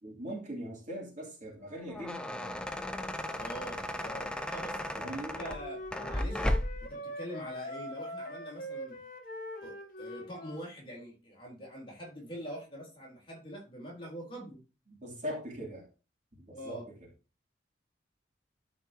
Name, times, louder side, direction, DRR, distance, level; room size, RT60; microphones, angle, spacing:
voice 1, 0.0-2.3 5.0-5.4 14.9-15.9 16.3-17.1, equal, 40° right, -1 dB, 3.0 m, -41 dB
sound 1, 1.7-6.9, left 1 dB, 5° left, 0.6 m, -35 dB
voice 2, 3.4-9.0 9.6-14.6 16.5-16.9, equal, 25° left, -2 dB, 4.0 m, -44 dB
Wind instrument woodwind instrument, 5.3-10.6, left 1 dB, 45° left, 1.8 m, -42 dB
13.0 x 5.0 x 2.9 m, 0.31 s
head